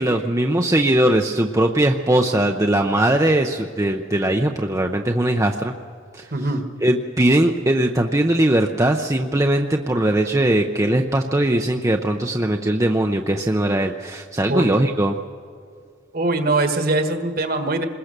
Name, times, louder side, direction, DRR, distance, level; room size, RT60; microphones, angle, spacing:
voice 1, 0.0-5.7 6.1-6.3 6.8-15.2, right 1 dB, 15° right, 3 dB, 0.6 m, -20 dB
voice 2, 6.3-6.6 14.5-14.7 16.1-17.8, right 2 dB, 45° right, 7 dB, 1.6 m, -22 dB
26.5 x 21.0 x 6.7 m, 2.2 s
head